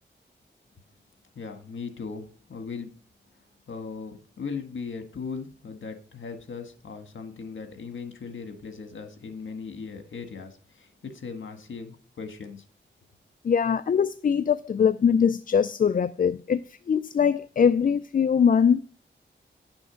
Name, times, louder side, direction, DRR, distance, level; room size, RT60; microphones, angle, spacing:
voice 1, 1.3-2.9 3.7-12.6, left 5 dB, 80° left, 1.5 m, -38 dB
voice 2, 13.4-18.8, left 7 dB, 45° left, 0.4 m, -22 dB
10.5 x 6.3 x 5.1 m
wide cardioid pair, 95°, 20 cm